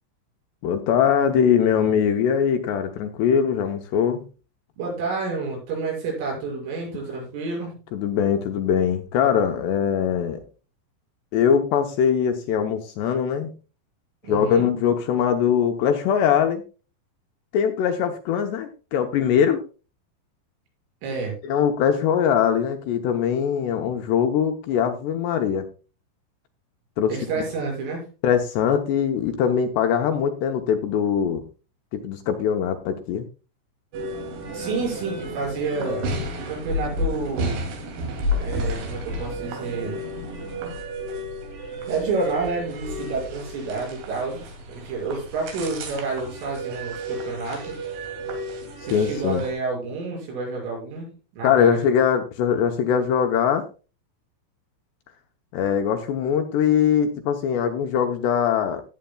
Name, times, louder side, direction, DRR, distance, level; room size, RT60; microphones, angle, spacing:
voice 1, 0.6-4.2 7.9-10.4 11.3-13.5 14.3-16.6 17.5-19.6 21.4-25.6 27.0-27.2 28.2-31.4 31.9-33.3 48.9-49.4 51.4-53.6 55.5-58.8, left 8 dB, 75° left, 5 dB, 2.7 m, -22 dB
voice 2, 4.8-7.7 14.2-14.7 21.0-21.3 27.1-28.1 34.5-36.0 36.5-37.6 38.3-40.0 41.9-47.8 48.8-51.9, right 4 dB, 85° right, -1 dB, 8.7 m, -29 dB
sound 1, 33.9-49.5, equal, 70° right, 5.0 m, -32 dB
17.0 x 9.0 x 2.3 m, 0.33 s
omnidirectional pair, 5.6 m